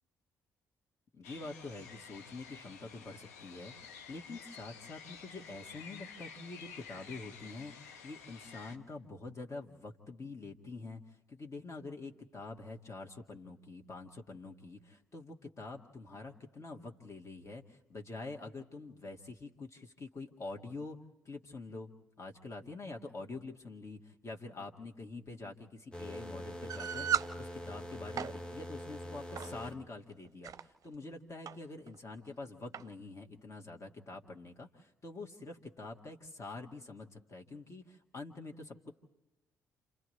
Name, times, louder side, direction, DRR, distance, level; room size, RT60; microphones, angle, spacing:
voice 1, 1.1-21.0 21.3-21.9 22.2-38.9, left 3 dB, 35° left, 2 dB, 2.0 m, -46 dB
sound 1, 1.2-8.8, left 6 dB, 80° left, 0.9 m, -51 dB
sound 2, 25.9-29.8, left 1 dB, 10° left, 1.4 m, -44 dB
sound 3, 26.7-27.3 28.0-28.3 29.4-29.6 30.2-30.6 31.5-31.6 31.9-32.0 32.7-32.9, right 9 dB, 45° right, 0.6 m, -34 dB
29.5 x 28.0 x 3.3 m, 1.0 s
figure-of-eight pair, 45°, 8 cm